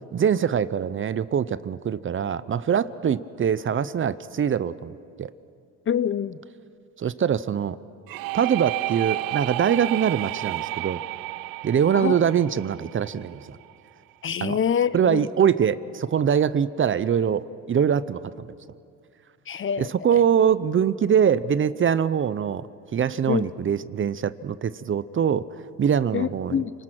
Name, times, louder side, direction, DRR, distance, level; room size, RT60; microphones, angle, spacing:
voice 1, 0.1-5.3 7.0-7.8 8.3-11.0 11.6-13.6 14.4-14.6 14.9-18.5 19.8-22.6 22.9-25.5 25.8-26.6, right 8 dB, 35° right, 16 dB, 0.6 m, -23 dB
voice 2, 5.9-6.4 11.9-12.2 14.2-15.3 19.5-19.9 23.3-23.4 26.1-26.7, left 8 dB, 35° left, 16 dB, 0.6 m, -25 dB
sound 1, 8.1-13.7, right 19 dB, 75° right, 0.5 m, -31 dB
29.0 x 19.5 x 6.1 m, 2.3 s
cardioid pair, 95°, 35 cm